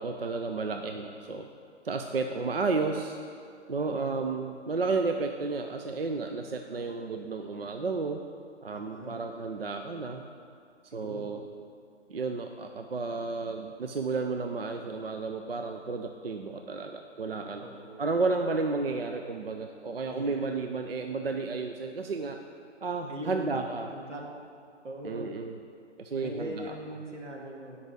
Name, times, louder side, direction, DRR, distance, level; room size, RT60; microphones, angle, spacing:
voice 1, 0.0-1.5 1.8-3.2 3.7-8.2 8.6-10.2 10.9-11.4 12.1-17.6 18.0-22.4 22.8-23.9 25.0-25.5 26.0-26.7, right 4 dB, 55° right, 5 dB, 0.5 m, -32 dB
voice 2, 8.7-9.1 10.9-11.3 17.6-18.0 20.1-20.5 23.1-23.6 23.9-24.2 24.8-25.3 26.1-27.8, right 1 dB, 85° right, 0 dB, 1.9 m, -40 dB
8.5 x 5.4 x 6.3 m, 2.3 s
hypercardioid pair, 175°, 36 cm